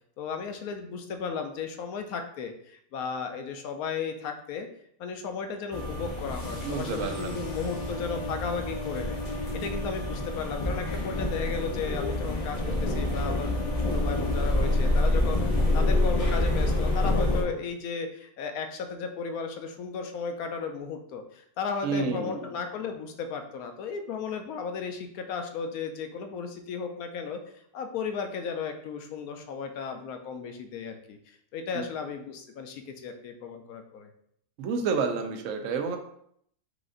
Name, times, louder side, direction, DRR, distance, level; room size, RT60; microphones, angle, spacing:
voice 1, 0.2-4.7 5.0-13.5 13.8-27.4 27.7-34.1, left 5 dB, 70° left, 6 dB, 1.0 m, -35 dB
sound 1, 5.7-17.4, left 1 dB, 55° left, 0.4 m, -27 dB
voice 2, 6.6-7.4 21.8-22.5 31.7-31.8 34.6-36.0, right 5 dB, 70° right, 5 dB, 0.8 m, -29 dB
4.9 x 2.5 x 3.7 m, 0.69 s
omnidirectional pair, 1.7 m